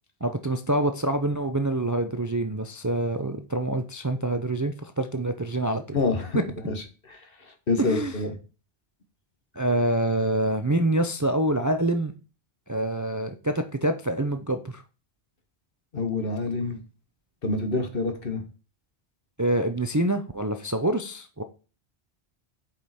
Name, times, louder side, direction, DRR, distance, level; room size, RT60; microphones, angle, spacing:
voice 1, 0.2-6.0 7.8-8.1 9.5-12.1 12.7-14.8 19.4-21.4, right 1 dB, 20° right, 7 dB, 0.5 m, -26 dB
voice 2, 5.9-6.4 6.7-8.4 15.9-16.8 17.4-18.4, left 3 dB, 60° left, 6 dB, 1.6 m, -27 dB
7.6 x 5.4 x 4.3 m, 0.34 s
omnidirectional pair, 1.1 m